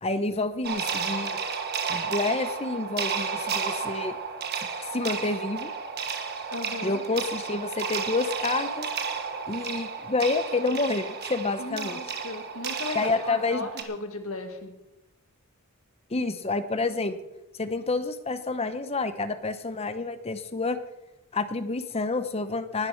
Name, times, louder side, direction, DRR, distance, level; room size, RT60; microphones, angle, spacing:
voice 1, 0.0-1.4 1.9-4.2 4.6-4.7 4.9-5.7 6.8-8.9 9.5-12.0 12.9-13.7 16.1-17.2 17.6-20.8 21.3-22.9, left 3 dB, 30° left, 10 dB, 0.8 m, -28 dB
sound 1, 0.6-13.8, right 6 dB, 50° right, 1.3 m, -32 dB
voice 2, 6.5-7.0 11.6-14.7, left 2 dB, 70° left, 6 dB, 1.9 m, -36 dB
19.5 x 6.8 x 6.4 m, 0.97 s
head